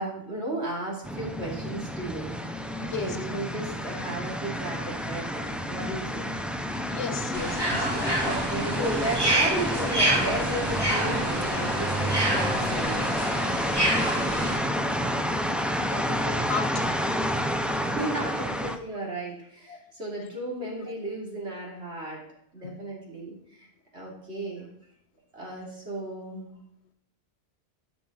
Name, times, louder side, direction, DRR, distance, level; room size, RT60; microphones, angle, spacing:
voice 1, 0.0-2.3 2.7-6.3 8.2-13.2 17.8-22.2 22.5-24.7 25.3-26.6, right 1 dB, 85° right, 3.3 m, -34 dB
sound 1, 1.0-18.8, equal, ahead, 0.4 m, -29 dB
voice 2, 2.9-3.2 6.9-8.2 12.2-12.3 15.3-15.4 15.9-16.9 19.7-19.8 22.6-22.8, left 6 dB, 90° left, 1.1 m, -35 dB
sound 2, 7.3-14.6, right 1 dB, 25° right, 1.5 m, -28 dB
15.0 x 6.1 x 3.9 m
omnidirectional pair, 1.1 m